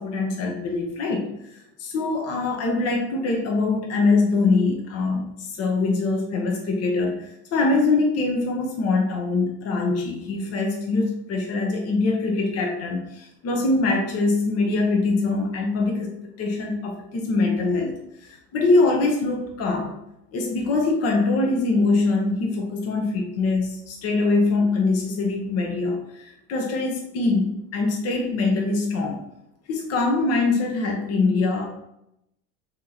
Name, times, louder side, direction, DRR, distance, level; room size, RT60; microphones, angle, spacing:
voice 1, 0.0-17.9 18.2-19.9 20.3-29.2 29.7-31.7, left 3 dB, 45° left, 0 dB, 0.8 m, -23 dB
2.9 x 2.9 x 3.8 m, 0.82 s
supercardioid pair, 100°, 34 cm